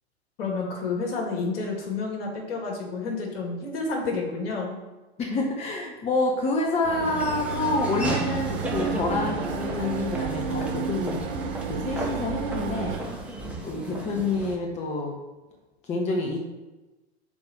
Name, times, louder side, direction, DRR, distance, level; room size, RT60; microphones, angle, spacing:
voice 1, 0.4-4.8, left 3 dB, 60° left, -1 dB, 2.4 m, -30 dB
voice 2, 5.2-11.2 11.7-13.0 13.6-15.2 15.8-16.4, left 2 dB, 20° left, 1 dB, 1.0 m, -27 dB
sound 1, 6.8-13.0, right 7 dB, 45° right, 0.9 m, -32 dB
Laughter / Walk footsteps, 7.0-14.5, equal, 5° right, 1.4 m, -34 dB
5.3 x 4.8 x 6.4 m, 1.1 s
figure-of-eight pair, 95°, 33 cm